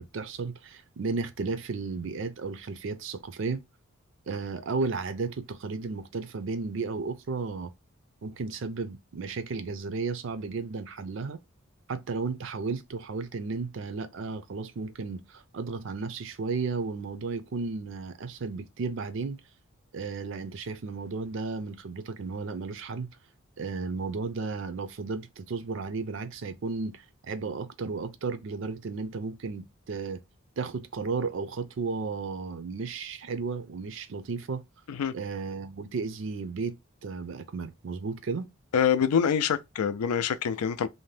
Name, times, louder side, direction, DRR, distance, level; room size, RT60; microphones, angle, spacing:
voice 1, 0.0-3.6 4.3-7.7 8.2-11.4 11.9-19.4 19.9-23.1 23.6-30.2 30.6-34.6 35.1-36.7 37.0-38.5, right 4 dB, 60° right, 0.4 m, -34 dB
voice 2, 38.7-40.9, left 7 dB, 85° left, 0.4 m, -25 dB
2.6 x 2.1 x 3.2 m
head